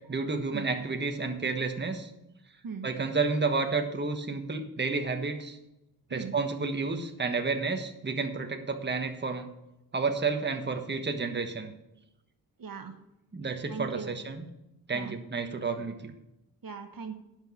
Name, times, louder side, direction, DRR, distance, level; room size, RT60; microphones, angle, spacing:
voice 1, 0.1-2.1 2.8-5.6 6.1-9.5 9.9-11.7 13.3-14.4 14.9-16.1, right 4 dB, 30° right, 5 dB, 1.3 m, -31 dB
voice 2, 12.6-12.9 13.7-14.1 14.9-15.2 16.6-17.2, right 6 dB, 65° right, 6 dB, 1.3 m, -39 dB
10.5 x 6.2 x 7.1 m, 0.92 s
cardioid pair, 70°, 37 cm